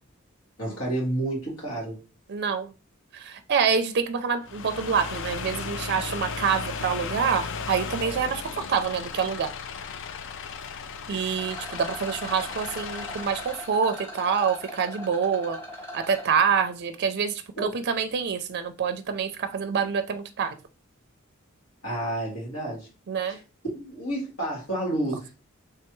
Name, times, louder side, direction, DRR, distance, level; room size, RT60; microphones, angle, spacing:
voice 1, 0.6-2.0 17.6-17.7 21.8-22.9 23.3-25.3, right 1 dB, 80° left, 2.2 m, -30 dB
voice 2, 2.3-2.7 3.1-9.5 11.1-15.6 15.9-20.6 23.1-23.4, right 6 dB, 50° right, 0.4 m, -26 dB
sound 1, 4.4-13.8, left 5 dB, 60° left, 0.4 m, -35 dB
Rattle, 11.3-16.3, equal, 15° left, 1.6 m, -40 dB
3.3 x 3.3 x 3.0 m
head